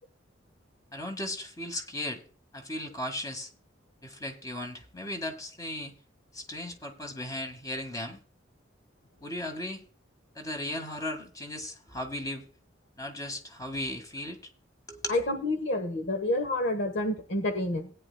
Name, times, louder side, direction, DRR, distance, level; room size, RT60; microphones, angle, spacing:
voice 1, 0.9-2.2 2.5-3.5 4.0-5.9 6.3-8.2 9.2-9.8 10.3-12.5 13.0-14.4 14.9-15.2, left 1 dB, 20° left, 5 dB, 1.9 m, -36 dB
voice 2, 15.1-17.9, left 1 dB, 60° left, 7 dB, 1.4 m, -29 dB
18.0 x 9.7 x 2.3 m, 0.40 s
head